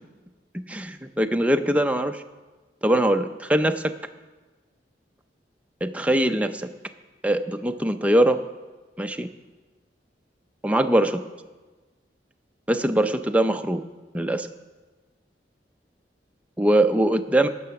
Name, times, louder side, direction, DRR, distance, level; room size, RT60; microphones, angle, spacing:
voice 1, 0.7-2.2 2.8-3.8 5.8-6.7 7.2-8.4 9.0-9.3 10.6-11.2 12.7-13.8 14.1-14.5 16.6-17.5, right 1 dB, 10° right, 6 dB, 0.5 m, -22 dB
17.5 x 6.9 x 5.8 m, 1.3 s
head